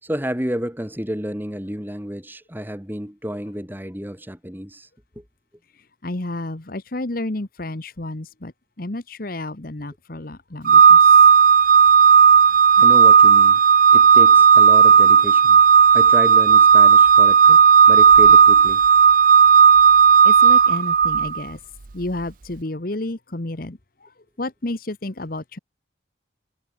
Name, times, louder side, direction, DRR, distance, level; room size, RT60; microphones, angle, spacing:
voice 1, 0.0-4.9 5.2-5.3 12.8-13.6 13.9-15.6 15.9-18.8, equal, 10° right, 3.5 m, -30 dB
voice 2, 6.0-8.5 8.8-11.2 20.2-21.6 21.9-24.1 24.4-25.6, left 2 dB, 50° left, 1.3 m, -31 dB
Organ, 10.6-21.4, right 6 dB, 45° right, 0.6 m, -12 dB
head